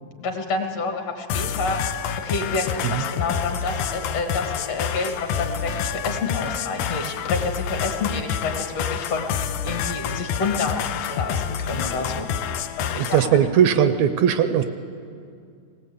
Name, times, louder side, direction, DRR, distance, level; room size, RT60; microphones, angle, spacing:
voice 1, 0.2-1.8 2.2-13.2, left 3 dB, 60° left, 4 dB, 2.7 m, -29 dB
sound 1, 1.3-13.3, left 8 dB, 90° left, 2.2 m, -28 dB
voice 2, 13.0-14.6, right 9 dB, 75° right, 9 dB, 1.9 m, -19 dB
19.0 x 18.5 x 8.2 m, 2.3 s
omnidirectional pair, 3.4 m